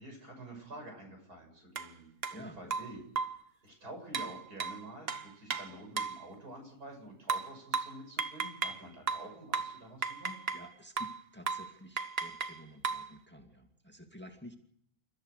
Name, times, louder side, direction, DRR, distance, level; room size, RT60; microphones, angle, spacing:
voice 1, 0.0-3.0 3.6-10.3, right 1 dB, 85° right, 3 dB, 7.0 m, -48 dB
sound 1, 1.8-1.9 2.2-2.4 2.7-3.5 4.1-6.2 7.3-8.8 9.1-10.7 11.0-11.2 11.5-11.7 12.0-13.1, right 5 dB, 45° right, 1.2 m, -35 dB
voice 2, 2.3-2.8 5.5-5.8 10.5-14.6, equal, 5° left, 4 dB, 2.2 m, -51 dB
29.5 x 14.0 x 6.5 m, 0.69 s
omnidirectional pair, 1.6 m